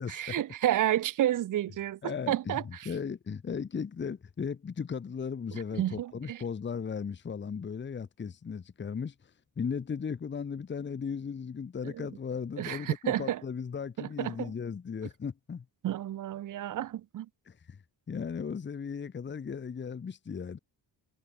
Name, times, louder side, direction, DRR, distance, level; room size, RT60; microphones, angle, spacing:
voice 1, 0.0-2.9 5.5-6.4 11.8-12.1 12.6-13.4 14.0-14.5 15.8-17.3, right 12 dB, 50° right, 0.5 m, -31 dB
voice 2, 2.0-9.1 9.6-15.6 17.5-17.8 18.1-20.6, left 6 dB, 25° left, 0.9 m, -36 dB
wide cardioid pair, 160°, 41 cm